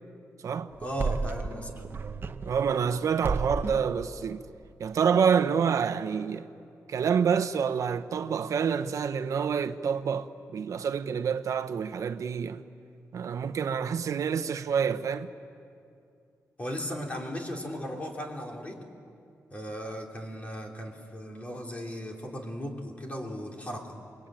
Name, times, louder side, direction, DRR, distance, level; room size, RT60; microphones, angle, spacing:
sound 1, 0.7-2.9 3.2-3.9, right 4 dB, 40° right, 0.8 m, -33 dB
voice 1, 0.8-1.8 16.6-18.8 19.5-24.0, equal, 25° left, 3.2 m, -36 dB
voice 2, 2.4-4.4 4.8-6.5 6.9-12.6 13.1-15.3, right 7 dB, 70° right, 0.8 m, -27 dB
28.5 x 23.0 x 9.0 m
wide cardioid pair, 170°, 6 cm